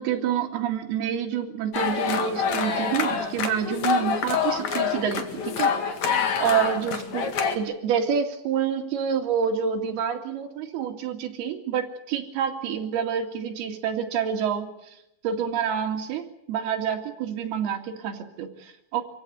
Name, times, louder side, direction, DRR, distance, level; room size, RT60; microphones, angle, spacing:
voice 1, 0.0-5.7 6.0-15.0 15.2-19.0, right 8 dB, 65° right, 2 dB, 4.1 m, -28 dB
sound 1, 1.7-7.6, left 6 dB, 50° left, 2.6 m, -26 dB
25.5 x 16.5 x 9.6 m, 0.82 s
omnidirectional pair, 5.2 m